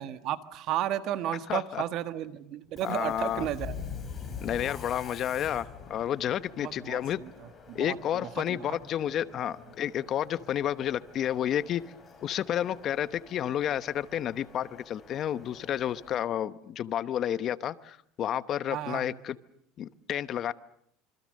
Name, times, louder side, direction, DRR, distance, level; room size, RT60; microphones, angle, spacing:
voice 1, 0.0-3.8 6.6-8.8 18.7-19.2, right 12 dB, 50° right, 11 dB, 1.6 m, -34 dB
voice 2, 1.5-1.8 2.8-3.5 4.4-7.2 7.7-11.8 12.2-19.4 19.8-20.5, left 10 dB, 40° left, 15 dB, 1.0 m, -31 dB
Subway metro underground, 2.7-16.2, left 5 dB, 20° left, 5.4 m, -46 dB
27.0 x 25.5 x 6.6 m, 0.67 s
cardioid pair, 135°, 0 cm